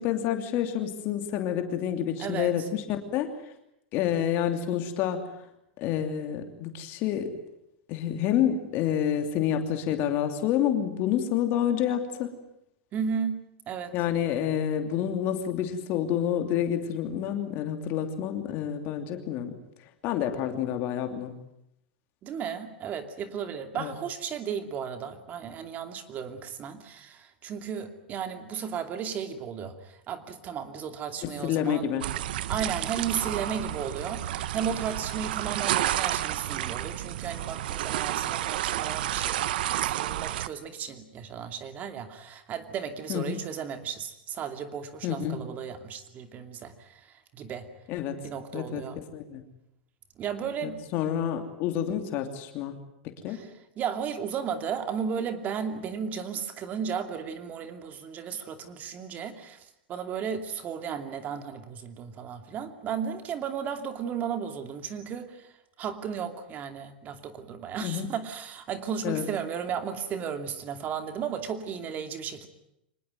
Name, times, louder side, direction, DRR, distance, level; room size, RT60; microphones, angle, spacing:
voice 1, 0.0-3.5 3.9-5.3 5.8-7.3 7.9-12.3 13.9-19.5 20.0-21.3 23.7-23.9 31.2-32.1 43.1-43.4 45.0-45.4 47.9-48.2 48.5-48.8 49.1-49.4 50.6-52.7 53.2-53.4 67.8-68.1 69.0-69.2, left 10 dB, 45° left, 6 dB, 3.0 m, -28 dB
voice 2, 2.2-2.5 12.9-14.0 22.2-31.9 32.5-39.4 39.8-47.7 48.2-49.0 50.2-50.8 53.3-53.5 53.8-59.6 59.9-65.5 65.8-72.5, right 7 dB, 30° right, 8 dB, 2.7 m, -34 dB
sound 1, 32.0-40.5, right 13 dB, 70° right, 1.0 m, -30 dB
25.0 x 19.5 x 9.2 m, 0.78 s
supercardioid pair, 135°, 5 cm